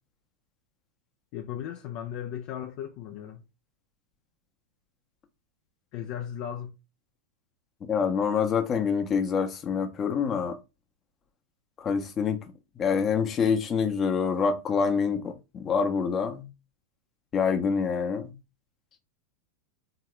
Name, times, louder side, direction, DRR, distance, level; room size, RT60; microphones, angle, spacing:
voice 1, 1.3-3.4 5.9-6.8, left 9 dB, 45° left, 0.4 m, -36 dB
voice 2, 7.9-10.6 11.8-12.4 12.8-16.5 17.3-18.3, left 6 dB, 25° left, 0.8 m, -26 dB
3.6 x 2.8 x 3.2 m
figure-of-eight pair, 90°, 0 cm